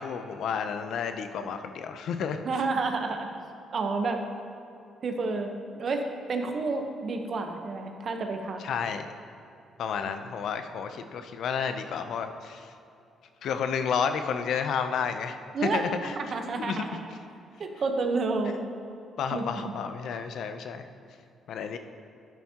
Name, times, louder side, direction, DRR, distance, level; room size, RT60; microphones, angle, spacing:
voice 1, 0.0-2.4 8.6-9.1 9.8-12.7 13.4-15.4 15.7-16.2 16.6-16.9 19.2-20.8 21.5-21.8, left 6 dB, 70° left, 8 dB, 0.6 m, -31 dB
voice 2, 2.4-3.3 3.7-4.2 5.0-8.6 10.0-10.1 15.5-15.8 16.2-17.1 17.6-18.6 19.3-19.7, right 3 dB, 50° right, 5 dB, 1.0 m, -30 dB
11.0 x 9.3 x 2.9 m, 2.7 s
cardioid pair, 90°, 0 cm